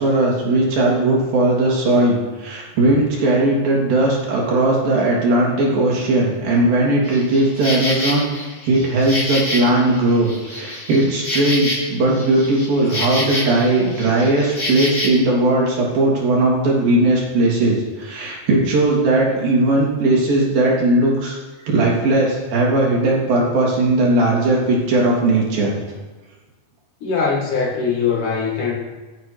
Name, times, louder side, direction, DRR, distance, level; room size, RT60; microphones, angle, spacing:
voice 1, 0.0-21.4 21.6-25.7, right 2 dB, 85° right, -3 dB, 5.1 m, -18 dB
Insect, 7.0-15.1, left 1 dB, 25° left, 6.5 m, -27 dB
voice 2, 27.0-28.7, left 5 dB, 65° left, -3 dB, 3.6 m, -21 dB
27.0 x 9.1 x 4.7 m, 1.2 s
omnidirectional pair, 4.0 m